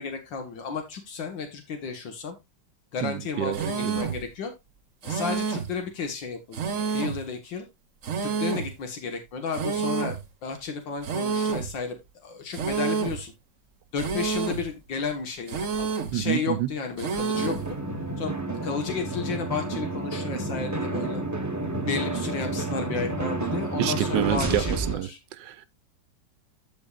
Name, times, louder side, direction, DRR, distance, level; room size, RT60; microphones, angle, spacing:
voice 1, 0.0-2.4 2.9-4.5 5.0-7.7 8.2-12.0 12.2-13.3 13.9-15.9 16.1-17.6 18.2-18.4 18.6-21.2 21.8-25.2, left 5 dB, 80° left, 2.1 m, -33 dB
voice 2, 3.0-4.0 16.1-16.7 23.8-25.1 25.4-25.7, right 11 dB, 75° right, 1.3 m, -28 dB
sound 1, 3.5-4.2 5.0-5.8 6.5-7.3 8.0-8.7 9.5-10.2 11.0-11.7 12.5-13.2 14.0-14.7 15.5-16.2 17.0-17.7, right 5 dB, 50° right, 1.3 m, -29 dB
sound 2, 17.3-25.0, right 2 dB, 15° right, 0.8 m, -30 dB
15.0 x 5.3 x 2.4 m
omnidirectional pair, 2.0 m